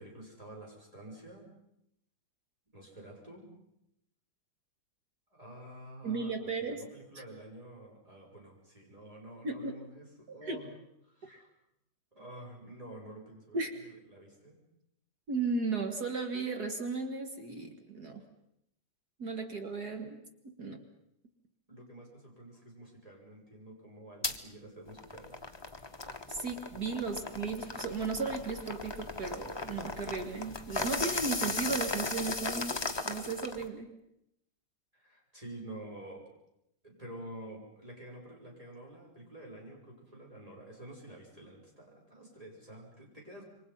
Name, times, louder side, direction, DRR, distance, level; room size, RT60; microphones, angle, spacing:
voice 1, 0.0-1.5 2.7-3.5 5.3-10.8 11.1-11.5 12.1-14.6 21.7-25.4 34.9-36.3 36.8-43.4, right 1 dB, 15° right, -2 dB, 6.6 m, -49 dB
voice 2, 6.0-6.8 7.2-7.3 9.4-9.8 10.4-10.6 11.2-11.4 13.5-13.7 15.3-18.2 19.2-20.2 20.4-20.8 26.3-33.9, right 4 dB, 50° right, 5 dB, 2.3 m, -35 dB
sound 1, 24.2-24.4 24.9-33.7, left 3 dB, 15° left, 1.0 m, -37 dB
27.5 x 24.5 x 5.7 m, 0.79 s
omnidirectional pair, 2.2 m